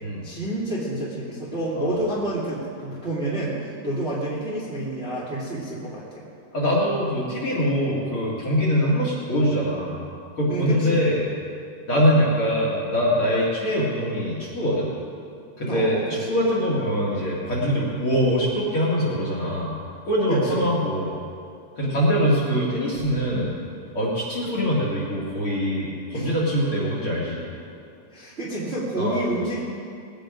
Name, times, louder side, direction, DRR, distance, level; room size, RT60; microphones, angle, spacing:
voice 1, 0.2-6.3 10.5-11.0 15.7-16.4 20.3-20.7 26.1-26.3 28.1-29.6, right 1 dB, 20° right, -7 dB, 1.9 m, -29 dB
voice 2, 1.8-2.1 6.5-10.0 10.4-11.2 11.9-14.9 15.6-19.7 20.0-21.1 21.8-23.5 23.9-27.5 29.0-29.1, equal, 40° left, -5 dB, 2.5 m, -23 dB
20.5 x 9.1 x 5.1 m, 2.4 s
omnidirectional pair, 4.8 m